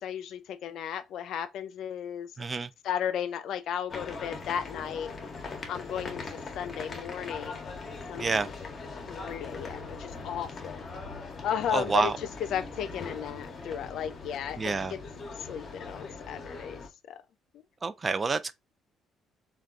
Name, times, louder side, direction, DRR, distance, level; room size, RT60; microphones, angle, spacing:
voice 1, 0.0-2.3 2.8-5.1 5.7-7.6 8.1-8.4 9.1-10.8 11.4-12.1 12.5-15.0 15.4-16.8 17.1-17.2, left 9 dB, 70° left, 0.4 m, -34 dB
voice 2, 2.4-2.7 8.2-8.5 11.7-12.2 14.6-14.9 17.8-18.5, right 4 dB, 35° right, 0.3 m, -28 dB
sound 1, 3.9-16.9, left 4 dB, 40° left, 0.8 m, -41 dB
3.4 x 2.3 x 2.4 m
supercardioid pair, 80°, 0 cm